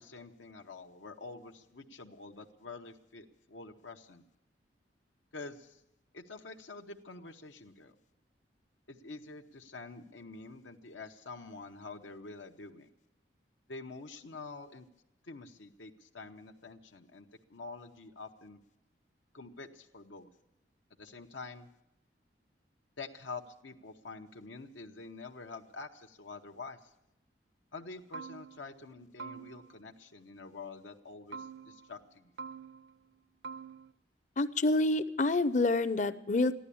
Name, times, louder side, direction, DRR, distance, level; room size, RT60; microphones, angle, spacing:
voice 1, 0.0-4.2 5.3-5.8 6.1-7.9 8.9-12.9 13.7-14.9 15.2-18.6 19.3-20.3 21.0-21.7 23.0-26.9 27.7-32.3, left 3 dB, 85° left, 4 dB, 1.0 m, -47 dB
sound 1, 27.8-27.9 28.1-28.8 29.2-29.9 31.3-32.0 32.4-33.1 33.4-33.9, right 5 dB, 65° right, 0.6 m, -46 dB
voice 2, 34.4-36.6, left 2 dB, 40° left, 13 dB, 0.6 m, -28 dB
15.0 x 11.5 x 8.5 m, 0.85 s
head